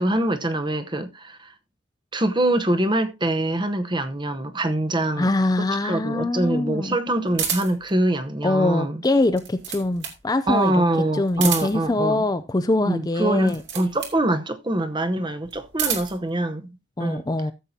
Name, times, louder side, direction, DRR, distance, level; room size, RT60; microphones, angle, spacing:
voice 1, 0.0-1.5 2.1-5.3 5.6-9.0 10.5-12.2 12.9-17.2, right 1 dB, 20° right, 0.9 m, -24 dB
voice 2, 5.2-7.0 8.4-10.8 11.1-13.6 17.0-17.5, left 2 dB, 20° left, 0.4 m, -23 dB
sound 1, 7.3-7.9 9.2-10.2 11.3-11.9 13.4-14.2 15.5-16.2, right 8 dB, 60° right, 2.6 m, -29 dB
14.5 x 7.4 x 2.8 m
head